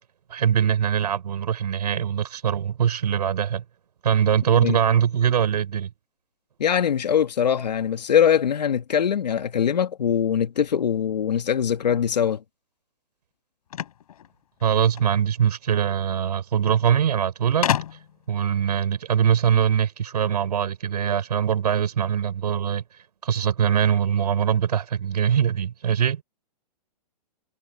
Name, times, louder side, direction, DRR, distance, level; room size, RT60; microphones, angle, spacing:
voice 1, 0.3-3.6 4.0-5.9 14.6-17.7 18.3-22.8 23.2-26.2, right 8 dB, 75° right, 5.4 m, -22 dB
voice 2, 6.6-12.4, left 8 dB, 80° left, 2.1 m, -22 dB
sound 1, 13.7-15.1 16.2-16.3 16.5-16.6 17.6-18.3, left 10 dB, 65° left, 5.7 m, -28 dB
hypercardioid pair, 150°, 21 cm